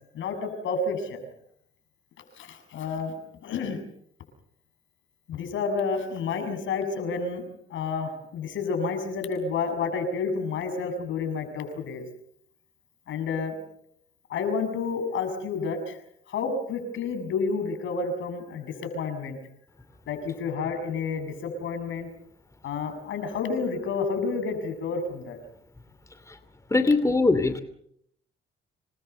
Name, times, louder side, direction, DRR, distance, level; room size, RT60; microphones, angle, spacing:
voice 1, 0.1-1.2 2.4-3.1 3.4-3.8 5.3-7.4 7.7-12.0 13.1-13.6 14.3-16.0 16.3-19.4 20.1-22.1 22.6-25.4, left 4 dB, 75° left, 8 dB, 6.7 m, -30 dB
voice 2, 26.7-27.6, left 3 dB, 15° left, 10 dB, 2.6 m, -21 dB
27.5 x 21.0 x 6.8 m, 0.71 s
cardioid pair, 90°, 20 cm